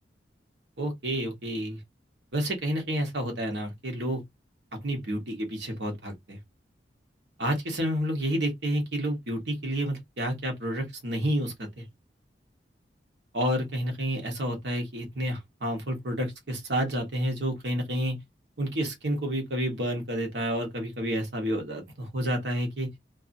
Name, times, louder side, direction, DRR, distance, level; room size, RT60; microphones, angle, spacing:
voice 1, 0.8-1.8 2.3-4.2 4.8-6.4 7.4-11.8 13.3-18.2 18.6-22.9, equal, 75° right, 1.1 m, -30 dB
2.6 x 2.5 x 2.6 m
head